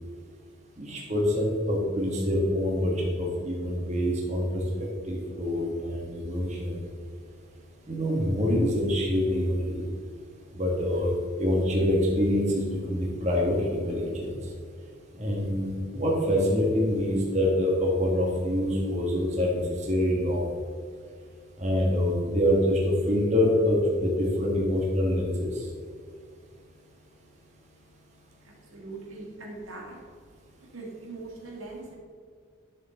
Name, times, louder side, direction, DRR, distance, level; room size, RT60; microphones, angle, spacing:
voice 1, 0.8-4.5 5.1-6.7 7.9-9.8 10.5-11.1 11.4-14.3 15.2-20.5 21.6-25.5, left 1 dB, 35° right, -3 dB, 1.9 m, -25 dB
voice 2, 28.4-30.0 30.7-32.0, right 3 dB, 85° right, -1 dB, 2.2 m, -41 dB
11.0 x 6.8 x 3.9 m, 2.1 s
head